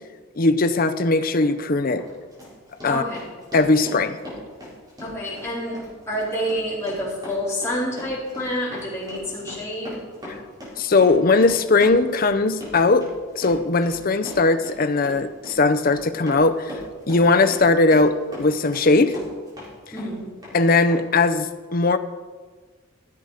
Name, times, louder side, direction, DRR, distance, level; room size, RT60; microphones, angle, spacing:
voice 1, 0.4-2.0 2.8-3.0 3.5-4.2 10.3-10.4 10.8-13.1 13.3-16.7 17.1-19.2 20.5-22.0, left 3 dB, 45° left, 9 dB, 0.6 m, -19 dB
Run, 1.4-1.5 2.0-19.7 20.0-20.6 20.9-21.0, left 1 dB, 20° right, 4.4 m, -39 dB
voice 2, 2.9-3.2 5.0-5.8 6.1-10.0 19.9-20.3, equal, 15° left, -8 dB, 4.3 m, -28 dB
14.5 x 8.0 x 5.0 m, 1.4 s
head